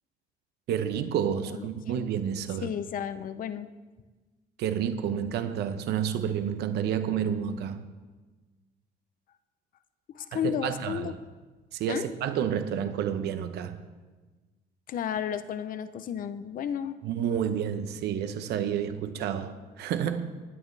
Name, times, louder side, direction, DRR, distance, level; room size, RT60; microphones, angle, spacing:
voice 1, 0.7-2.7 4.6-7.8 10.3-11.1 11.7-13.8 17.0-20.3, right 8 dB, 75° right, 1.0 m, -30 dB
voice 2, 1.5-2.0 2.6-3.7 10.1-11.1 11.9-12.1 14.9-17.0, left 9 dB, 55° left, 0.7 m, -33 dB
19.5 x 9.5 x 3.4 m
cardioid pair, 110°, 17 cm